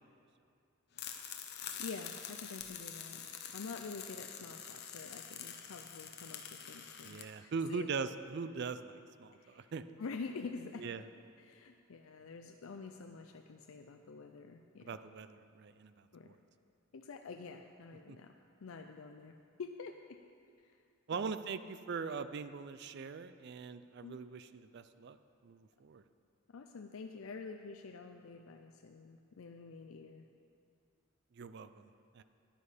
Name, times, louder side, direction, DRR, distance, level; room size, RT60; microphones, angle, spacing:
sound 1, 1.0-7.2, left 8 dB, 50° left, 0.8 m, -46 dB
voice 1, 1.5-7.9 9.3-9.7 10.0-11.0 11.4-14.9 16.1-16.3 16.9-18.3 18.6-20.2 20.6-20.8 21.1-21.3 24.0-24.2 26.5-30.3, left 4 dB, 75° left, 5 dB, 0.5 m, -47 dB
voice 2, 7.0-9.8 10.8-11.0 14.8-15.9 16.2-16.4 18.1-18.2 21.1-25.2 25.4-26.0 31.4-31.8 32.1-32.2, right 5 dB, 55° right, 12 dB, 0.4 m, -41 dB
10.5 x 9.6 x 5.0 m, 2.4 s
head